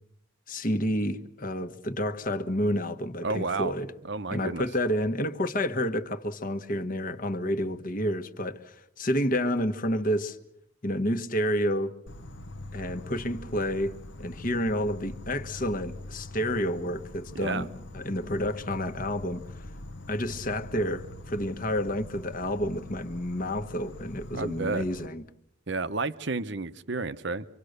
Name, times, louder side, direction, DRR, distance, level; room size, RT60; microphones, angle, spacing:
voice 1, 0.5-3.9 4.3-10.4 10.8-11.9 12.7-13.9 14.2-19.4 20.1-25.2, equal, 40° left, 1.3 m, -29 dB
voice 2, 3.2-3.7 4.1-4.6 17.3-17.7 24.3-24.8 25.7-27.4, right 3 dB, 60° right, 0.9 m, -31 dB
Insect, 12.1-25.1, left 1 dB, 60° left, 0.9 m, -43 dB
26.0 x 25.0 x 6.6 m
head